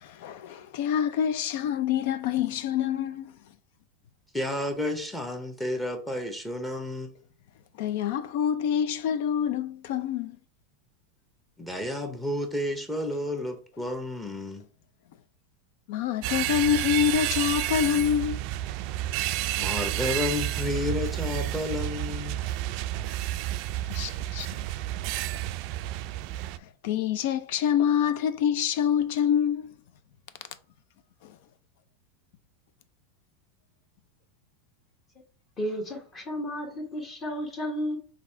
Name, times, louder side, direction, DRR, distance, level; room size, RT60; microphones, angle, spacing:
voice 1, 0.0-3.3 7.8-10.4 15.9-18.5 23.9-24.5 26.8-29.7, left 9 dB, 65° left, 0.5 m, -26 dB
voice 2, 4.3-7.1 11.6-14.6 19.5-22.4, left 1 dB, 10° left, 0.8 m, -31 dB
sound 1, 16.2-26.6, right 14 dB, 55° right, 0.3 m, -30 dB
voice 3, 35.6-38.0, equal, 30° left, 1.1 m, -32 dB
4.0 x 2.8 x 4.4 m
supercardioid pair, 120°, 0 cm